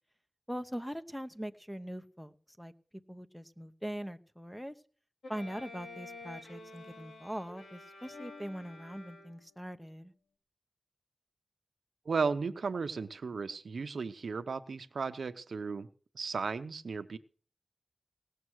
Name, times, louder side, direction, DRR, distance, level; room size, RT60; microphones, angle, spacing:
voice 1, 0.5-2.7 3.1-4.8 5.3-10.1, equal, ahead, 10 dB, 0.9 m, -42 dB
Bowed string instrument, 5.2-9.7, left 2 dB, 80° left, 2.8 m, -49 dB
voice 2, 12.1-15.9 16.1-17.2, right 5 dB, 80° right, 11 dB, 0.7 m, -35 dB
18.0 x 6.6 x 6.3 m, 0.42 s
wide cardioid pair, 70°, 0 cm